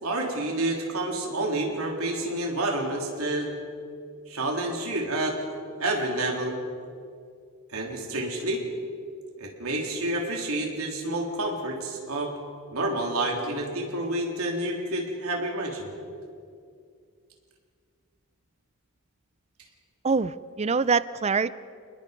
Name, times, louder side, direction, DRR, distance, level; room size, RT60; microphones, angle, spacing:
voice 1, 0.0-3.5 4.3-5.4 5.8-6.6 7.7-8.6 9.4-12.3 12.7-15.9, right 1 dB, 75° right, 0 dB, 3.7 m, -29 dB
voice 2, 20.0-21.5, right 5 dB, 30° right, 16 dB, 0.5 m, -24 dB
28.0 x 20.5 x 5.3 m, 2.3 s
head